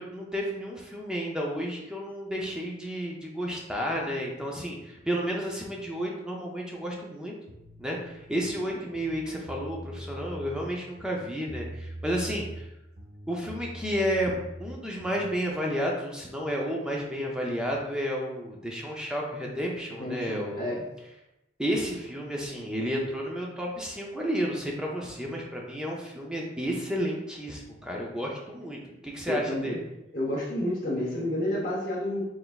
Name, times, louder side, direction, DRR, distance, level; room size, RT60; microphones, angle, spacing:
voice 1, 0.0-7.3 7.8-12.6 13.3-20.6 21.6-29.8, equal, 5° right, -2 dB, 0.5 m, -31 dB
sound 1, 7.5-8.5 8.9-10.7 11.0-12.7 13.0-15.3, equal, 80° right, 0.9 m, -42 dB
voice 2, 20.0-20.9 29.3-29.8 30.1-32.2, left 1 dB, 45° left, -8 dB, 0.8 m, -30 dB
4.0 x 3.4 x 2.4 m, 0.92 s
head